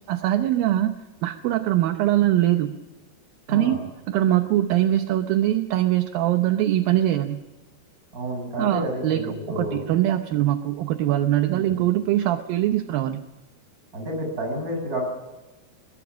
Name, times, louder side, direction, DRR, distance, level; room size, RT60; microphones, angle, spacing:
voice 1, 0.1-0.9 1.2-2.7 3.5-3.8 4.1-7.4 8.6-9.3 9.5-13.2, right 13 dB, 75° right, 8 dB, 2.5 m, -22 dB
voice 2, 3.5-3.8 8.1-9.8 11.5-11.8 13.9-15.0, equal, 20° right, 2 dB, 6.4 m, -30 dB
22.0 x 21.5 x 6.2 m, 1.1 s
omnidirectional pair, 4.4 m